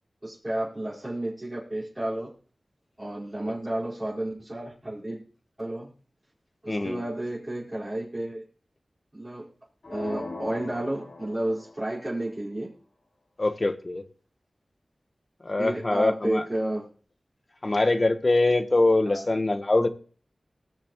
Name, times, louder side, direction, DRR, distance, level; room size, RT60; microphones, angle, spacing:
voice 1, 0.2-2.3 3.0-5.2 5.6-5.9 6.6-8.4 9.1-9.4 9.9-12.7 15.6-16.8 19.0-19.2, right 1 dB, 30° right, -8 dB, 4.7 m, -31 dB
voice 2, 6.7-7.0 13.4-14.0 15.4-16.4 17.6-19.9, left 2 dB, 45° left, 9 dB, 1.2 m, -23 dB
sound 1, 9.8-11.9, left 2 dB, 80° left, 3.9 m, -40 dB
20.5 x 6.9 x 3.1 m, 0.41 s
cardioid pair, 50°, 0 cm